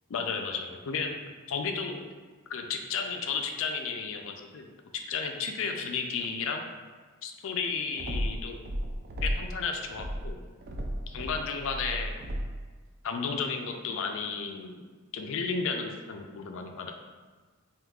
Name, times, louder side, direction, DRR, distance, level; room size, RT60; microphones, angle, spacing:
voice 1, 0.1-1.2 1.5-2.1 2.5-4.7 5.1-6.6 7.2-8.6 9.2-10.4 11.1-12.2 13.0-14.8 15.1-16.9, left 5 dB, 60° left, 4 dB, 0.4 m, -33 dB
sound 1, 8.0-9.6 9.9-12.7, equal, 45° right, 0.3 m, -34 dB
3.7 x 2.7 x 2.3 m, 1.4 s
head